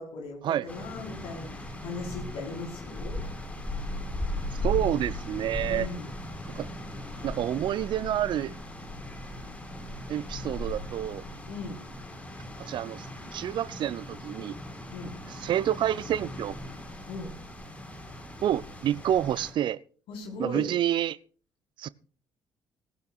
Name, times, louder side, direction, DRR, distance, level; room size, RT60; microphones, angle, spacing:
voice 1, 0.0-3.2 5.7-6.1 11.5-11.8 14.9-15.2 17.1-17.3 20.1-20.7, left 3 dB, 60° left, 4.5 m, -38 dB
sound 1, 0.7-19.5, left 1 dB, 15° left, 5.2 m, -38 dB
voice 2, 4.6-5.9 6.6-6.7 7.2-8.5 10.1-11.2 12.6-13.1 13.3-14.6 15.3-16.6 18.4-19.8 20.4-21.2 21.8-21.9, right 11 dB, 50° right, 0.6 m, -28 dB
18.5 x 15.5 x 2.5 m
figure-of-eight pair, 45°, 10 cm